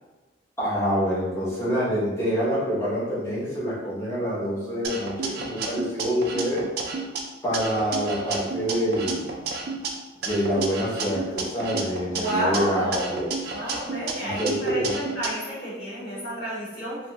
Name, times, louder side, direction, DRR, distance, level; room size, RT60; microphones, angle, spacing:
voice 1, 0.6-6.6 7.4-9.3 10.2-13.3 14.2-15.0, equal, 15° left, -8 dB, 0.7 m, -26 dB
sound 1, 4.8-7.2 7.5-9.9 10.2-12.6 12.9-15.3, right 4 dB, 55° right, 0.3 m, -31 dB
voice 2, 12.1-13.2 13.5-17.0, equal, 55° left, -10 dB, 1.3 m, -30 dB
2.5 x 2.2 x 2.9 m, 1.2 s
head